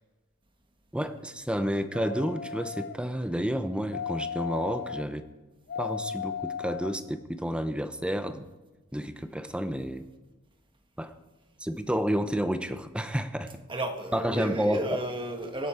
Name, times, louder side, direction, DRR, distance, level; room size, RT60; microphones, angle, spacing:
voice 1, 0.9-5.3 5.8-8.4 8.9-10.0 11.0-11.2 11.6-13.5 14.1-15.0, equal, 5° right, 9 dB, 0.7 m, -30 dB
sound 1, 1.9-3.0 3.9-5.0 5.7-6.9 7.5-7.6, left 7 dB, 45° left, 0.5 m, -35 dB
voice 2, 13.7-15.7, right 1 dB, 25° right, 4 dB, 1.6 m, -33 dB
23.5 x 8.2 x 4.4 m, 1.2 s
head